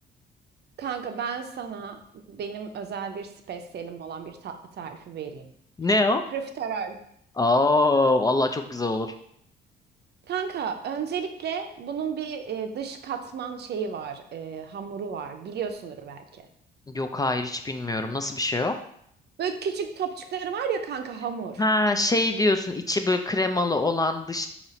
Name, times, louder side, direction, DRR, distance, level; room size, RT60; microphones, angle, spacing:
voice 1, 0.8-5.5 6.3-7.0 10.3-16.4 19.4-21.6, right 6 dB, 60° right, 6 dB, 0.6 m, -33 dB
voice 2, 5.8-6.2 7.4-9.1 16.9-18.7 21.6-24.5, left 2 dB, 20° left, 6 dB, 0.3 m, -23 dB
4.0 x 2.9 x 4.1 m, 0.69 s
cardioid pair, 90°, 20 cm